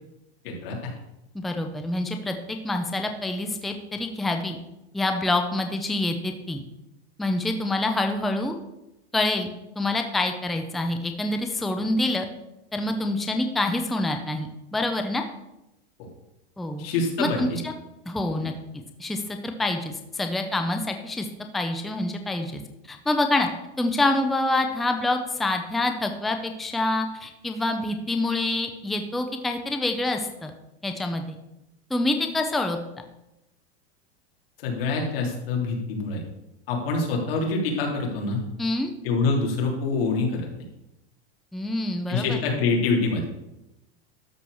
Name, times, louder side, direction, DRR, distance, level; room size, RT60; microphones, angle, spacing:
voice 1, 0.4-0.9 16.8-17.6 18.4-18.5 34.6-36.2 36.7-38.4 39.0-40.5 42.1-43.2, left 3 dB, 65° left, 0 dB, 3.6 m, -25 dB
voice 2, 1.3-4.6 4.9-6.6 7.2-8.6 9.1-9.5 9.8-12.3 12.7-15.2 16.6-16.9 17.2-17.7 18.1-18.5 19.0-21.3 21.5-22.6 22.9-23.5 23.8-30.5 30.8-31.4 31.9-32.8 38.6-38.9 41.5-42.4, left 2 dB, ahead, 5 dB, 0.4 m, -26 dB
12.5 x 4.6 x 6.9 m, 0.92 s
supercardioid pair, 160°, 31 cm